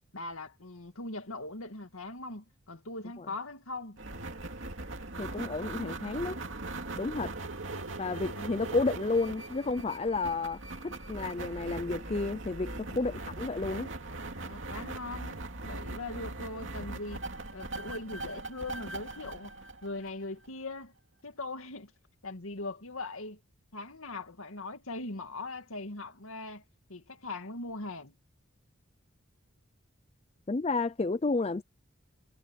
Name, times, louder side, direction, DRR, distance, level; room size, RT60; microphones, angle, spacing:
voice 1, 0.1-4.0 8.3-8.8 12.9-13.0 14.4-17.2 17.5-19.5 19.8-20.9 21.2-21.9 22.2-23.4 23.7-26.6 26.9-28.1, left 2 dB, 80° left, 2.2 m, -40 dB
sound 1, 4.0-20.5, right 2 dB, 60° right, 2.7 m, -40 dB
voice 2, 5.2-6.4 6.9-7.3 8.0-13.9 30.5-31.6, left 3 dB, 30° left, 0.4 m, -31 dB
head